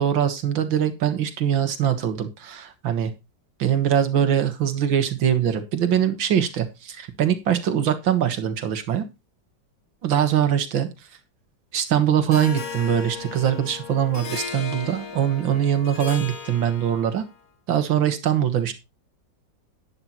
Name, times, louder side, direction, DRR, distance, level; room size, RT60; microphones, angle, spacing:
voice 1, 0.0-3.1 3.6-9.1 10.0-10.9 11.7-17.2 17.7-18.7, right 9 dB, 85° right, 9 dB, 2.2 m, -22 dB
Harp, 12.3-17.3, left 6 dB, 50° left, 2.1 m, -36 dB
11.0 x 11.0 x 3.0 m, 0.25 s
omnidirectional pair, 2.1 m